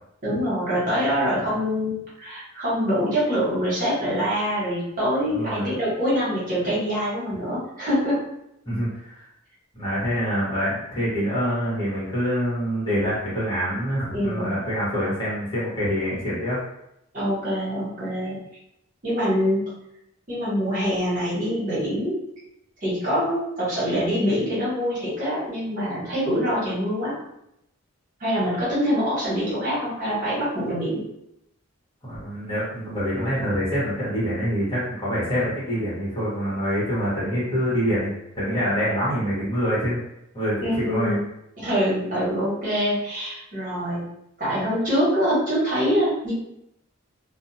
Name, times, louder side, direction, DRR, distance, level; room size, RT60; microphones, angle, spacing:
voice 1, 0.2-8.2 14.1-14.6 17.1-18.4 19.0-19.7 20.3-22.2 22.8-27.2 28.2-31.0 40.6-41.2 41.6-44.1 44.4-46.3, equal, 40° right, -9 dB, 1.3 m, -24 dB
voice 2, 5.3-5.7 8.6-9.3 9.7-16.6 32.0-40.0 40.3-41.2, equal, 25° left, -10 dB, 1.2 m, -26 dB
2.6 x 2.2 x 2.8 m, 0.80 s
head